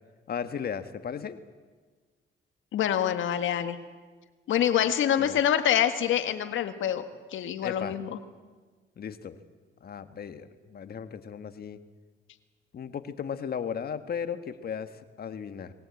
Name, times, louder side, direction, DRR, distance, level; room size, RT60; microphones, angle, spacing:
voice 1, 0.3-1.4 5.2-5.4 7.6-8.0 9.0-9.4 9.8-11.8 12.7-15.7, left 7 dB, 50° left, 10 dB, 1.5 m, -36 dB
voice 2, 2.7-3.8 4.5-7.0 7.3-8.2, left 10 dB, 75° left, 9 dB, 1.7 m, -26 dB
21.0 x 17.5 x 8.4 m, 1.4 s
cardioid pair, 90°, 20 cm